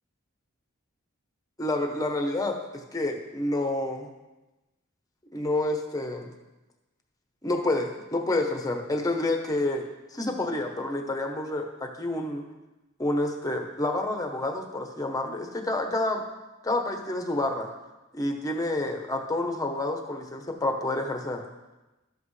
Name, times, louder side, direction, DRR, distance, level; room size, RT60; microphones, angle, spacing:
voice 1, 1.6-2.6 2.9-4.1 5.3-6.3 7.4-9.9 10.1-12.4 13.0-16.2 16.6-17.7 18.1-21.4, left 2 dB, 15° left, 3 dB, 1.0 m, -28 dB
12.0 x 7.8 x 3.3 m, 1.0 s
head